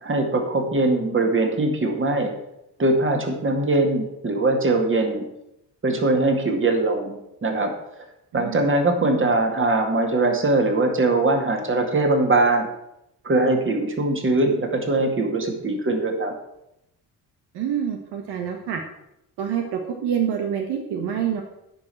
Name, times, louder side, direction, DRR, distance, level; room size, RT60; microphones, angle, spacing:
voice 1, 0.0-2.3 2.8-5.2 5.8-7.7 8.3-12.7 13.2-16.3, right 2 dB, 30° right, 4 dB, 2.3 m, -21 dB
voice 2, 8.3-8.7 17.5-18.8 19.4-21.4, right 8 dB, 85° right, 4 dB, 1.4 m, -26 dB
10.0 x 5.3 x 7.8 m, 0.84 s
cardioid pair, 100°, 39 cm